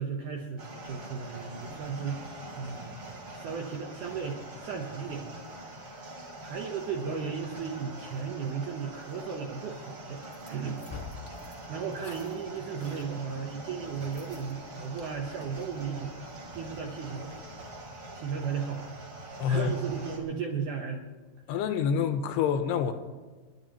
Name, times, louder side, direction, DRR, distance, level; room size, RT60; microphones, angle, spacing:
voice 1, 0.0-5.4 6.4-10.8 11.7-16.1 16.6-17.3 18.1-18.9 19.5-21.1, right 6 dB, 75° right, 1.9 m, -35 dB
sound 1, 0.6-20.2, right 2 dB, 35° right, 3.0 m, -44 dB
sound 2, 9.8-17.5, left 4 dB, 20° left, 0.6 m, -50 dB
voice 2, 19.4-19.7 21.5-22.9, left 8 dB, 90° left, 2.9 m, -27 dB
30.0 x 11.0 x 3.0 m
omnidirectional pair, 4.8 m